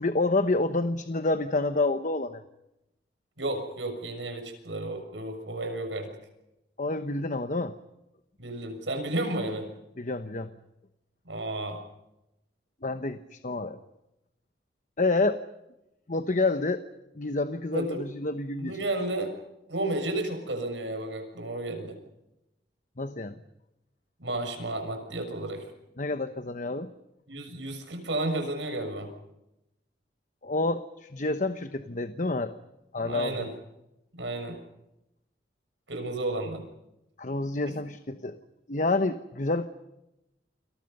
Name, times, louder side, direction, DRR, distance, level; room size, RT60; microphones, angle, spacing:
voice 1, 0.0-2.4 6.8-7.7 10.0-10.5 12.8-13.8 15.0-15.4 16.1-16.8 17.2-18.8 23.0-23.4 26.0-26.9 30.4-32.5 32.9-33.5 37.2-38.4 38.7-39.7, left 2 dB, 45° left, 10 dB, 1.0 m, -28 dB
voice 2, 3.4-6.1 8.4-9.7 11.2-11.8 17.7-18.0 18.6-19.3 19.7-22.0 24.2-25.7 27.3-29.1 33.0-33.5 34.1-34.6 35.9-36.6 37.6-37.8, right 2 dB, 85° right, 5 dB, 6.7 m, -32 dB
29.5 x 26.5 x 5.5 m, 0.90 s
head